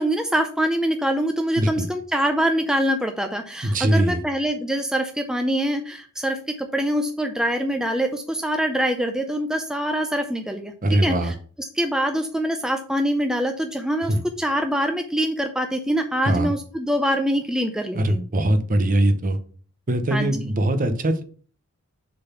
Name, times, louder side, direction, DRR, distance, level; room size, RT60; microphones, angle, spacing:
voice 1, 0.0-10.7 11.0-11.3 11.8-18.2 20.1-20.3, equal, 5° right, 5 dB, 0.5 m, -24 dB
voice 2, 1.6-1.9 3.6-4.2 10.8-11.3 14.1-14.2 16.2-16.5 17.9-19.4 19.9-21.2, right 1 dB, 35° right, 9 dB, 0.8 m, -21 dB
6.7 x 4.0 x 5.7 m, 0.43 s
head